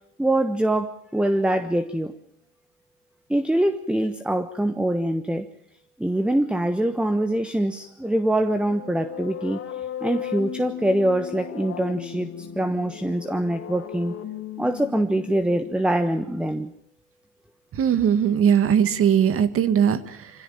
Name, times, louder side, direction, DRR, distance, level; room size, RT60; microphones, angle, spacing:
voice 1, 0.2-2.1 3.3-5.5 6.0-14.1 14.6-16.7, right 1 dB, 5° right, 11 dB, 1.1 m, -24 dB
sound 1, 8.5-16.2, left 9 dB, 45° left, 3.1 m, -36 dB
voice 2, 17.7-20.3, right 8 dB, 40° right, 12 dB, 1.9 m, -20 dB
25.5 x 16.5 x 8.8 m, 0.69 s
supercardioid pair, 105°, 32 cm